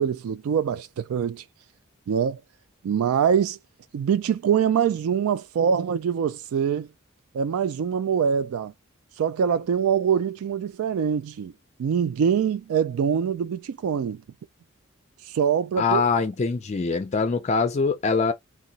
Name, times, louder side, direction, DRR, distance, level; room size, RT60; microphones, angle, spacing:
voice 1, 0.0-1.4 2.1-2.4 2.8-3.6 3.9-6.9 7.3-8.7 9.2-11.5 11.8-14.2 15.2-16.0, right 7 dB, 80° right, 0.3 m, -24 dB
voice 2, 15.8-18.3, left 4 dB, 30° left, 0.4 m, -23 dB
2.8 x 2.2 x 3.9 m
head